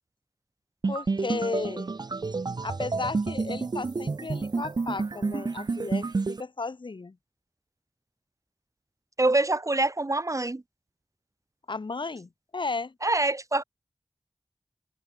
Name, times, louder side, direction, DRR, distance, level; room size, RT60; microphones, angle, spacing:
sound 1, 0.8-6.4, right 4 dB, 55° right, 0.8 m, -30 dB
voice 1, 0.9-1.9 2.6-7.2 11.7-12.9, left 3 dB, 70° left, 5.9 m, -34 dB
voice 2, 9.2-10.6 13.0-13.6, right 2 dB, 40° right, 1.9 m, -25 dB
cardioid pair, 45°, 8 cm